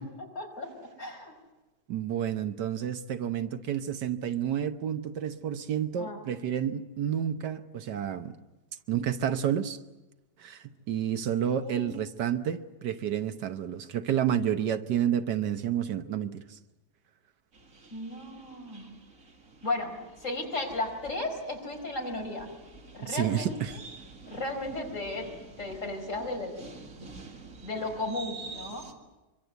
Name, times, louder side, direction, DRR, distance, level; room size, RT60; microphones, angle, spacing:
voice 1, 0.3-1.3 6.0-6.2 11.6-11.9 17.9-18.9 19.6-22.5 22.9-23.6 24.3-25.3 25.6-26.6 27.0-27.1 27.6-28.8, left 2 dB, 45° left, 5.1 m, -35 dB
voice 2, 1.9-8.4 8.9-9.8 10.4-16.6 23.0-23.7, right 9 dB, 80° right, 1.6 m, -30 dB
sound 1, 17.5-28.9, right 4 dB, 50° right, 2.5 m, -48 dB
24.5 x 24.0 x 8.2 m
omnidirectional pair, 1.8 m